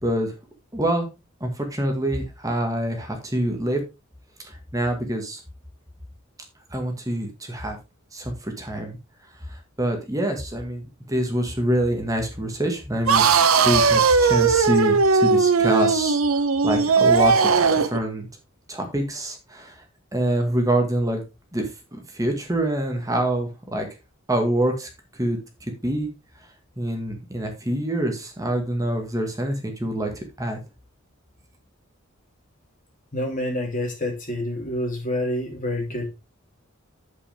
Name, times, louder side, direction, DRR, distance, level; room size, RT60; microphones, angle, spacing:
voice 1, 0.0-0.3 0.7-1.1 1.4-3.8 4.4-5.4 6.7-7.8 8.1-9.0 9.5-13.3 13.6-18.3 18.7-19.8 20.1-21.2 21.5-23.9 24.3-26.1 26.8-30.6, right 1 dB, 15° right, 4 dB, 1.8 m, -26 dB
sound 1, 13.1-18.0, right 5 dB, 90° right, 0.9 m, -18 dB
voice 2, 33.1-36.1, left 1 dB, 40° left, 0 dB, 3.4 m, -27 dB
8.4 x 8.3 x 3.5 m, 0.26 s
head